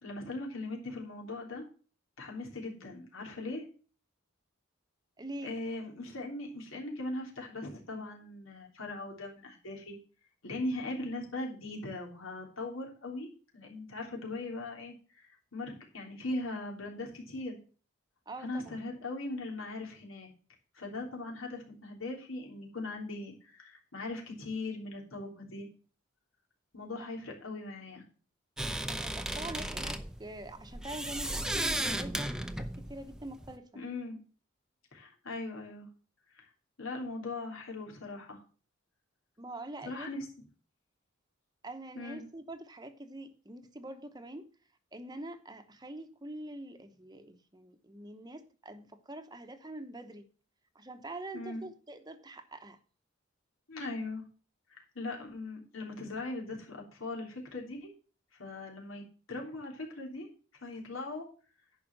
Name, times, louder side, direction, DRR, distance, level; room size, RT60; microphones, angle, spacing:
voice 1, 0.0-1.6 2.2-3.6 5.4-10.0 10.4-17.6 18.4-20.3 20.7-25.7 26.7-28.0 33.7-34.2 34.9-35.9 36.3-36.5 36.8-38.4 39.8-40.2 41.9-42.2 51.3-51.6 53.7-54.2 54.7-57.9 58.4-60.3 60.6-61.2, left 2 dB, 90° left, 3.3 m, -39 dB
voice 2, 5.2-5.6 18.3-18.8 28.9-33.8 39.4-40.1 41.6-44.5 44.9-50.3 50.7-52.8, right 1 dB, 20° right, 0.9 m, -45 dB
sound 1, 28.6-33.6, right 1 dB, 5° right, 0.6 m, -35 dB
11.0 x 5.0 x 7.7 m
head